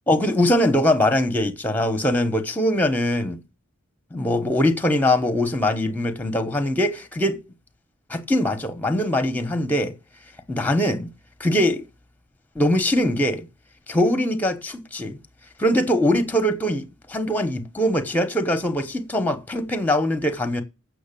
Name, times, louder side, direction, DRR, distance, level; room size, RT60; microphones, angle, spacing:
voice 1, 0.1-3.4 4.1-7.4 8.1-9.9 10.5-11.1 11.4-11.8 12.5-13.5 13.9-15.2 15.6-20.6, left 1 dB, 10° left, 1.0 m, -22 dB
7.8 x 6.3 x 6.8 m
head